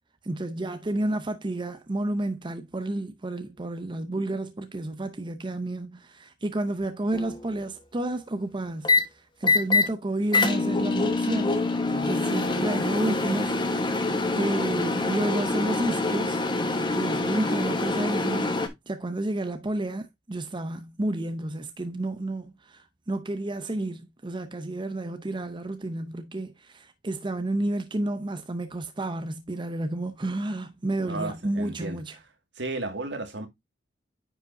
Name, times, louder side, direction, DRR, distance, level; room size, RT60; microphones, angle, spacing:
voice 1, 0.2-11.6 12.0-16.4 16.9-32.1, right 1 dB, 25° right, 0.6 m, -31 dB
sound 1, 7.1-7.5 8.8-9.0 9.4-9.9 10.3-18.7, left 3 dB, 25° left, 1.2 m, -25 dB
voice 2, 31.1-32.2 32.6-33.5, right 2 dB, 75° right, 2.0 m, -34 dB
9.9 x 5.0 x 2.6 m
head